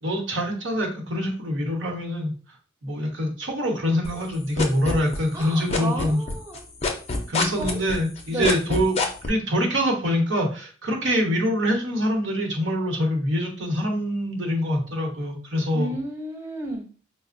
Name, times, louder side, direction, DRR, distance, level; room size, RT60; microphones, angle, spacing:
voice 1, 0.0-2.3 2.8-6.2 7.3-9.0 9.2-15.9, equal, 65° right, 1 dB, 0.9 m, -25 dB
sound 1, 4.0-5.4 5.7-9.3, left 3 dB, 30° left, 0.5 m, -25 dB
voice 2, 5.3-6.6 7.4-7.8 8.3-8.5 15.7-16.9, right 2 dB, 15° right, 0 dB, 0.6 m, -32 dB
4.9 x 2.0 x 2.5 m, 0.39 s
head